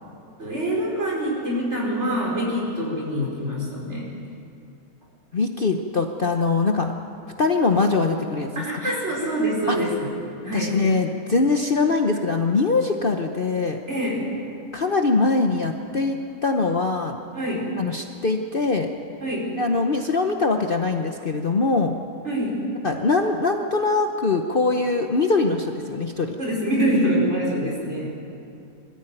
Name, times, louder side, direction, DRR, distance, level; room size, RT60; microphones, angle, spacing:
voice 1, 0.4-4.1 8.6-10.1 10.4-10.7 13.9-14.2 17.3-17.6 19.2-19.5 22.2-22.5 26.4-28.2, equal, 50° right, -3 dB, 5.2 m, -25 dB
voice 2, 5.3-6.9 7.4-8.5 9.7-9.8 10.5-13.8 14.7-17.2 17.8-18.9 19.6-22.0 22.8-26.4, left 3 dB, 40° left, 4 dB, 1.0 m, -22 dB
22.0 x 14.0 x 9.0 m, 2.7 s
omnidirectional pair, 1.6 m